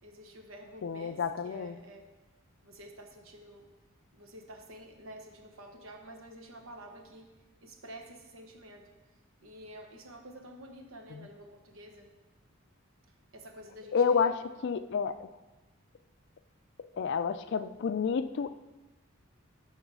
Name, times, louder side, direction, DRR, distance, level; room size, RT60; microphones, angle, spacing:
voice 1, 0.0-2.0 2.6-3.7 4.1-7.3 7.6-8.9 9.4-12.1 13.3-14.3, equal, 75° right, 4 dB, 1.1 m, -49 dB
voice 2, 0.8-1.8 11.1-11.3 13.9-14.4 14.6-15.3 16.9-18.5, left 6 dB, 55° left, 12 dB, 0.3 m, -29 dB
8.7 x 4.0 x 6.1 m, 1.1 s
head